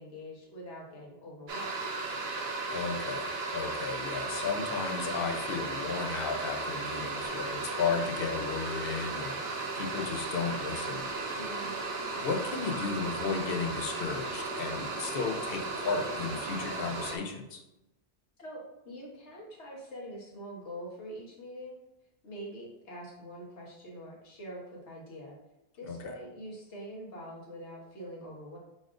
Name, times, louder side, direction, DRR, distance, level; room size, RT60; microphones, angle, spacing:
voice 1, 0.0-1.9 11.3-11.7 18.4-21.7 22.2-25.3 25.7-28.6, equal, 85° left, -4 dB, 1.4 m, -44 dB
sound 1, 1.5-17.2, right 3 dB, 65° right, 0.9 m, -35 dB
voice 2, 2.7-9.4 9.7-11.1 12.2-17.6 25.8-26.2, left 5 dB, 60° left, 5 dB, 0.8 m, -34 dB
4.1 x 2.5 x 4.7 m, 0.93 s
omnidirectional pair, 1.1 m